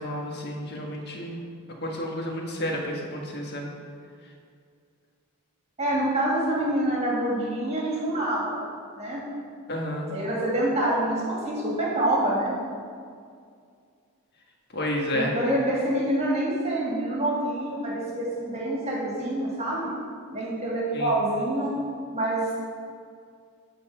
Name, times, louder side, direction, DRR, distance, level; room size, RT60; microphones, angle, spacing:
voice 1, 0.0-1.4 1.8-3.7 9.7-10.1 14.7-15.3 20.9-21.1, equal, 45° left, 0 dB, 1.5 m, -30 dB
voice 2, 5.8-8.6 9.0-9.2 10.1-12.5 15.1-19.9 20.3-21.7 22.1-22.6, right 1 dB, 30° right, -5 dB, 2.2 m, -26 dB
11.5 x 4.3 x 6.7 m, 2.2 s
head